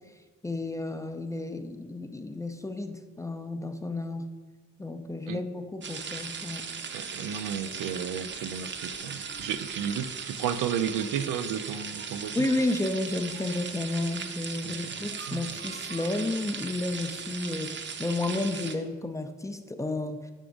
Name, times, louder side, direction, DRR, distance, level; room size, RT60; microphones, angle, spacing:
voice 1, 0.4-4.3 4.8-6.7 12.3-20.3, left 2 dB, 10° left, 7 dB, 0.4 m, -32 dB
sound 1, 5.8-18.7, right 6 dB, 40° right, 0.6 m, -38 dB
voice 2, 6.9-12.4 14.6-14.8 15.3-15.4, right 8 dB, 85° right, 11 dB, 0.5 m, -33 dB
5.8 x 3.7 x 5.1 m, 1.3 s
cardioid pair, 90°, 30 cm